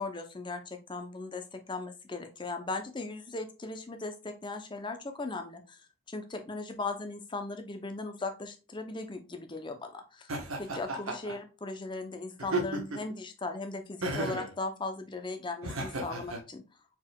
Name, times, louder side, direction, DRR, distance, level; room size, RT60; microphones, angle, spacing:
voice 1, 0.0-5.8 6.1-10.3 10.6-16.6, left 3 dB, 20° left, 7 dB, 0.6 m, -38 dB
Laughter, 10.3-11.4 12.4-13.1 14.0-14.5 15.6-16.4, right 2 dB, 80° right, 1.1 m, -34 dB
4.5 x 4.1 x 2.2 m, 0.31 s
head